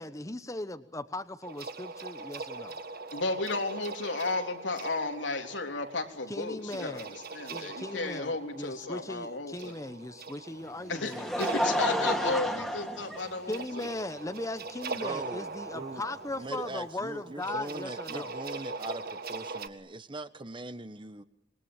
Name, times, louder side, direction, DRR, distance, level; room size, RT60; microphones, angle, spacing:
voice 1, 0.0-2.8 6.3-7.1 7.5-11.4 13.5-18.3, left 2 dB, 20° left, 10 dB, 1.1 m, -38 dB
sound 1, 1.4-19.7, right 4 dB, 55° right, 1.7 m, -42 dB
voice 2, 3.1-9.7 10.9-13.9, left 3 dB, 85° left, 4 dB, 3.6 m, -34 dB
Laughter, 10.6-13.9 14.7-14.8 16.2-16.3, equal, ahead, 2.6 m, -31 dB
voice 3, 14.9-16.0 16.4-21.2, right 2 dB, 25° right, 12 dB, 1.3 m, -41 dB
27.0 x 22.5 x 9.0 m, 0.84 s
head